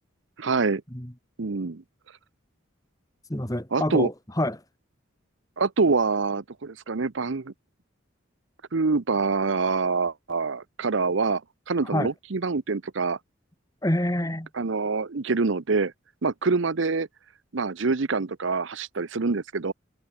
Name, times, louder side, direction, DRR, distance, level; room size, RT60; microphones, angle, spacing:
voice 1, 0.4-0.8 1.4-1.8 3.7-4.1 5.6-7.5 8.7-11.4 11.7-13.2 14.5-15.9 16.2-17.1 17.5-19.7, right 4 dB, 65° right, 0.8 m, -25 dB
voice 2, 3.3-4.6 11.9-12.1 13.8-14.5, left 1 dB, 15° left, 2.1 m, -27 dB
head